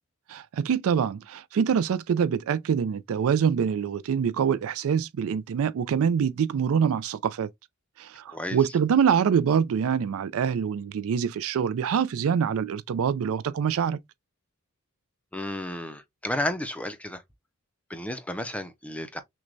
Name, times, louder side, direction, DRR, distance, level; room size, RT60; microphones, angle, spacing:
voice 1, 0.3-7.5 8.0-14.0, right 7 dB, 70° right, 0.3 m, -25 dB
voice 2, 8.3-8.6 15.3-17.2 17.9-19.2, left 1 dB, 5° left, 0.5 m, -32 dB
6.1 x 2.2 x 2.5 m
head